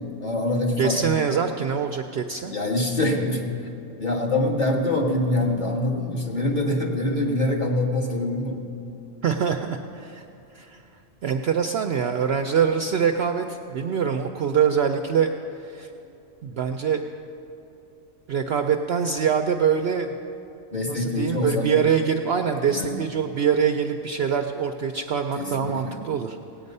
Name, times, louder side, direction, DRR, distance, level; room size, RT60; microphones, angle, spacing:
voice 1, 0.2-1.0 2.5-3.4 4.0-8.6 20.7-21.7 22.6-23.0 25.4-26.0, left 1 dB, 35° left, -1 dB, 1.5 m, -24 dB
voice 2, 0.8-2.5 9.2-10.2 10.5-10.8 11.2-15.3 15.6-15.9 16.4-17.0 18.3-20.1 20.9-26.4, right 7 dB, 65° right, 6 dB, 0.7 m, -24 dB
18.0 x 8.7 x 5.4 m, 2.8 s
omnidirectional pair, 1.4 m